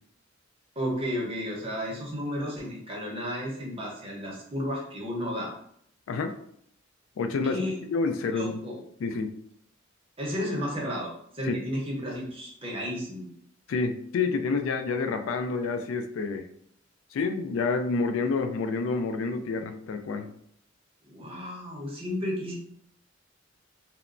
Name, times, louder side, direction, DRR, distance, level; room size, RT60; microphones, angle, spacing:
voice 1, 0.8-5.5 7.4-7.8 8.3-8.8 10.2-13.3 21.0-22.5, equal, 30° right, -2 dB, 0.7 m, -33 dB
voice 2, 7.2-7.6 7.9-8.6 9.0-9.3 11.4-11.6 13.7-16.5 17.1-20.3, left 4 dB, 85° left, 7 dB, 0.3 m, -28 dB
2.9 x 2.1 x 2.4 m, 0.68 s
head